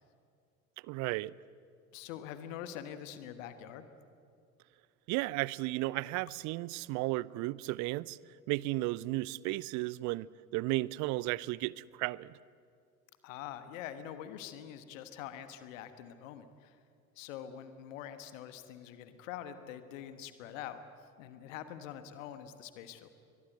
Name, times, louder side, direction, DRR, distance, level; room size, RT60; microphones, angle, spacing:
voice 1, 0.8-1.3 5.1-8.2 8.5-12.3, right 19 dB, 40° right, 0.6 m, -34 dB
voice 2, 1.9-3.9 13.2-16.8 17.1-20.8 21.2-23.1, left 10 dB, 60° left, 1.5 m, -45 dB
23.0 x 22.0 x 8.0 m
figure-of-eight pair, 60°, 43 cm